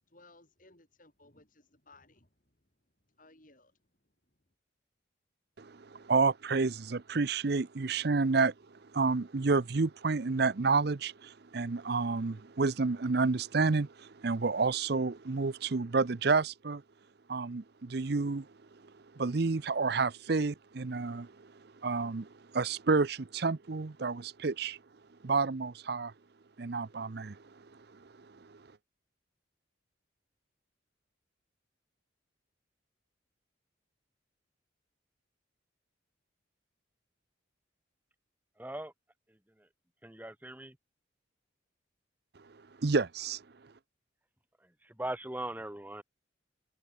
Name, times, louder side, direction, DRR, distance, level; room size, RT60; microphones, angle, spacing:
voice 1, 0.1-2.7 3.1-4.4, left 2 dB, 45° left, 4.7 m, -61 dB
voice 2, 5.6-8.5 8.9-16.8 17.3-18.5 19.1-21.3 21.8-24.8 25.2-26.1 26.6-27.4 28.5-28.6 42.8-43.4, right 4 dB, 55° right, 0.6 m, -30 dB
voice 3, 38.6-38.9 39.6-39.7 40.0-40.8 44.6-46.0, right 1 dB, 10° right, 1.2 m, -40 dB
head